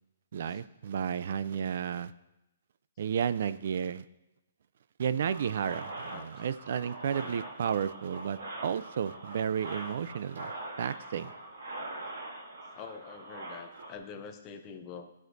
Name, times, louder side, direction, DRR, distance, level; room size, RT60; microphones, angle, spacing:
voice 1, 0.3-2.1 3.0-4.0 5.0-10.5 10.8-11.3, right 8 dB, 55° right, 15 dB, 0.3 m, -32 dB
sound 1, 5.3-13.9, right 2 dB, 90° right, 2.0 m, -43 dB
voice 2, 12.7-15.2, left 6 dB, 20° left, 6 dB, 0.6 m, -45 dB
13.5 x 6.3 x 2.6 m, 0.93 s
hypercardioid pair, 165°, 0 cm